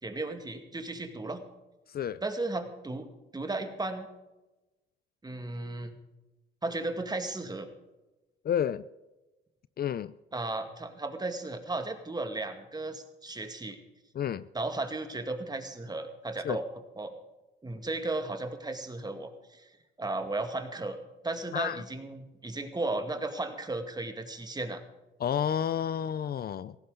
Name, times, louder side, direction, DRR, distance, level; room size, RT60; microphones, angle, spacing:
voice 1, 0.0-1.4 2.2-3.1 3.3-4.1 5.2-6.0 6.6-7.7 10.3-13.8 14.5-16.7 17.0-17.1 17.6-19.7 20.0-21.0 21.2-24.8, right 2 dB, 20° right, 6 dB, 2.2 m, -35 dB
voice 2, 8.4-8.9 9.8-10.1 14.1-14.4 16.4-16.6 21.5-21.8 25.2-26.8, left 9 dB, 50° left, 16 dB, 0.5 m, -30 dB
17.5 x 15.5 x 3.9 m, 1.0 s
cardioid pair, 90°, 20 cm